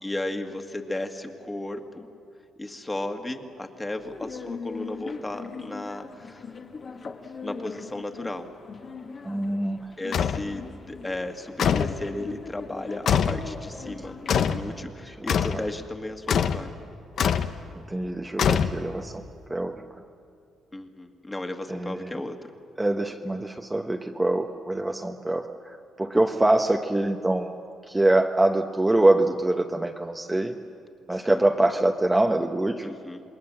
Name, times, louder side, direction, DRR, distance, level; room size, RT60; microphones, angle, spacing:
voice 1, 0.0-2.1 2.6-6.5 7.4-8.5 10.0-16.7 20.7-22.4 31.1-31.4 32.8-33.2, left 1 dB, 15° left, 5 dB, 1.9 m, -35 dB
sound 1, 4.0-14.7, left 5 dB, 45° left, 1.8 m, -40 dB
voice 2, 9.2-9.9 14.6-14.9 15.5-15.6 17.7-19.2 19.5-19.8 21.7-22.1 22.8-27.5 27.9-30.6 31.1-32.9, right 1 dB, 15° right, 3 dB, 1.0 m, -24 dB
sound 2, 10.1-10.5 11.6-12.0 13.1-13.5 14.3-14.7 15.3-15.6 16.3-16.7 17.2-17.5 18.4-19.0, left 8 dB, 65° left, 0.9 m, -23 dB
27.5 x 20.5 x 7.6 m, 2.5 s
cardioid pair, 90°, 0 cm